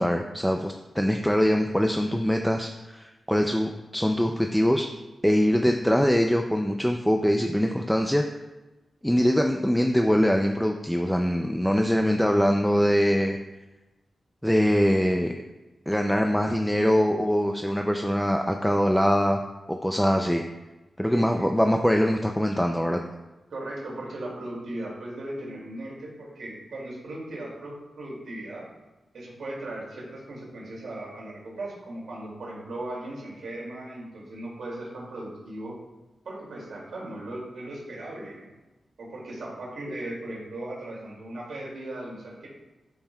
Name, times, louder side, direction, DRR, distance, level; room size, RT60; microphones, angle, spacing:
voice 1, 0.0-4.9 5.2-8.2 9.0-13.4 14.4-15.3 15.9-19.4 19.7-20.4 21.0-23.0, equal, 5° left, 3 dB, 0.4 m, -23 dB
voice 2, 21.1-21.5 23.5-28.7 29.1-35.8 36.2-38.5 39.0-42.5, right 1 dB, 80° right, -4 dB, 2.4 m, -37 dB
11.5 x 5.5 x 2.3 m, 1.1 s
wide cardioid pair, 110°, 0 cm